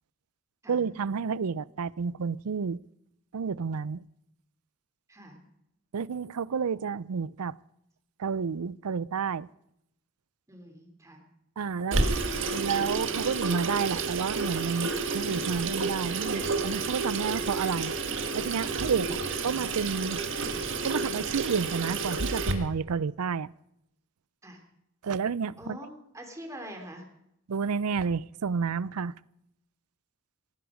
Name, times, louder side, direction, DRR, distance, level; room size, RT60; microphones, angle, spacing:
voice 1, 0.7-2.8 3.3-4.1 5.9-7.5 8.2-9.5 11.6-12.1 12.5-17.9 18.3-20.2 20.8-23.5 25.0-25.8 27.5-29.1, right 6 dB, 85° right, 0.5 m, -30 dB
voice 2, 5.1-5.4 10.5-11.2 24.4-24.6 25.6-27.1, equal, 15° right, 3.2 m, -44 dB
Water tap faucet / Sink (filling or washing), 11.9-22.5, right 3 dB, 60° right, 1.8 m, -30 dB
18.5 x 15.0 x 5.1 m
head